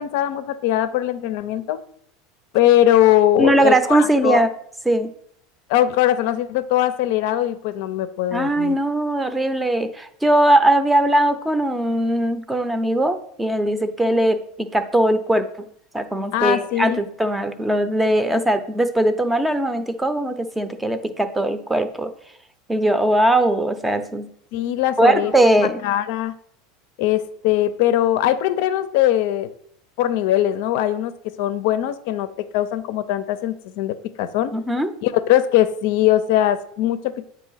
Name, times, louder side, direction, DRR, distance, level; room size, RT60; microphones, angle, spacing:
voice 1, 0.0-1.8 2.5-4.4 5.7-8.8 16.3-17.0 24.5-25.3 25.8-26.3 27.0-29.5 30.0-31.1 31.4-34.5 35.0-37.3, left 12 dB, 70° left, 12 dB, 0.5 m, -20 dB
voice 2, 3.4-4.5 4.9-5.1 8.3-15.5 15.9-22.1 22.7-24.3 25.0-25.8 34.5-34.9, right 1 dB, 10° right, 9 dB, 0.6 m, -20 dB
8.0 x 2.8 x 5.6 m, 0.67 s
supercardioid pair, 115°, 0 cm